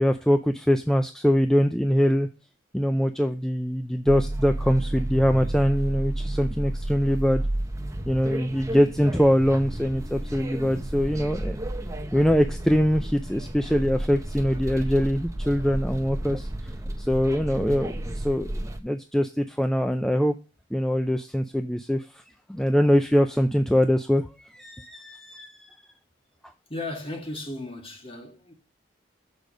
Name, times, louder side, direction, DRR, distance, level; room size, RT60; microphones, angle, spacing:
voice 1, 0.0-2.3 2.7-7.4 8.1-11.6 12.1-16.7 17.0-20.3 20.7-22.2 22.5-25.7, equal, 5° left, 0.3 m, -23 dB
sound 1, 4.1-18.8, right 1 dB, 15° right, 0.8 m, -32 dB
voice 2, 26.7-28.5, left 2 dB, 30° left, 1.8 m, -35 dB
6.6 x 5.2 x 6.2 m
head